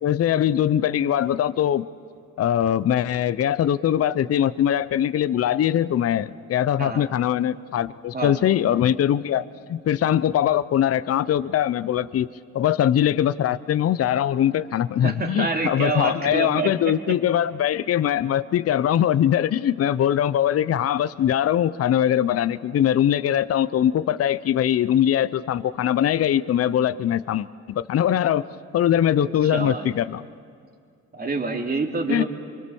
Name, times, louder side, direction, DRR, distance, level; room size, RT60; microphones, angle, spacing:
voice 1, 0.0-1.9 2.4-12.3 12.5-28.4 28.7-30.3 32.1-32.2, left 10 dB, 50° left, 15 dB, 0.7 m, -22 dB
voice 2, 15.0-17.2 29.2-29.9 31.1-32.2, right 3 dB, 30° right, 2 dB, 2.9 m, -27 dB
25.5 x 24.0 x 7.1 m, 2.2 s
cardioid pair, 90°, 30 cm